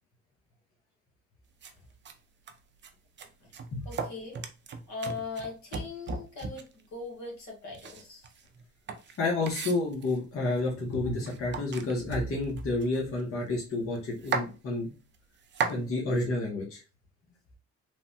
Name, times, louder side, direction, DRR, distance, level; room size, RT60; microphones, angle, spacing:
sound 1, 1.6-1.7 2.0-2.1 2.5-2.9 3.2-6.8 7.7-10.3 10.9-11.0 11.2-13.3 13.6-13.7 14.0-14.5 15.1-15.8, right 5 dB, 40° right, 0.4 m, -36 dB
voice 1, 3.8-4.4 4.9-8.2, left 4 dB, 65° left, 1.2 m, -39 dB
voice 2, 9.2-14.9 15.7-16.8, left 2 dB, 45° left, 0.9 m, -30 dB
3.2 x 2.1 x 2.7 m
cardioid pair, 90°, 30 cm